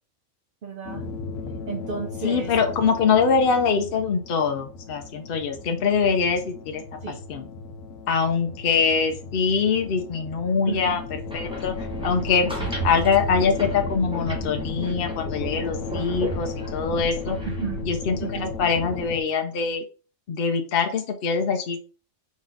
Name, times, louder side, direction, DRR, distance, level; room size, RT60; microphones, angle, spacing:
voice 1, 0.6-1.0 1.7-2.7 7.0-7.2 10.7-11.0 17.4-17.8 18.2-18.5, right 5 dB, 55° right, 1 dB, 0.6 m, -32 dB
sound 1, 0.9-19.2, left 4 dB, 75° left, 1.2 m, -35 dB
voice 2, 2.2-6.8 7.3-7.5 8.1-11.0 11.3-11.7 12.0-12.5 12.8-17.4 17.9-19.8 20.3-21.8, left 5 dB, 60° left, 4 dB, 0.6 m, -23 dB
sound 2, 11.1-19.1, right 3 dB, 5° right, 0.9 m, -34 dB
4.0 x 3.1 x 3.8 m, 0.36 s
omnidirectional pair, 1.5 m